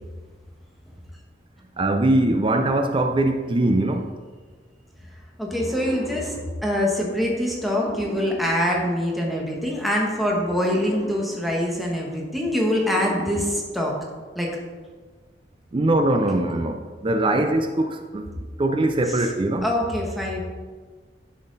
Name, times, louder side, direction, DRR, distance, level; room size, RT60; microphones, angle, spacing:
voice 1, 1.8-4.1 15.7-18.3 18.6-19.7, right 1 dB, 30° right, 0.5 m, -22 dB
sound 1, 5.4-9.6 10.3-14.2, equal, 25° left, 2.0 m, -41 dB
voice 2, 5.4-14.0 14.3-14.5 19.6-20.4, left 1 dB, ahead, 1.3 m, -24 dB
10.5 x 5.8 x 4.0 m
head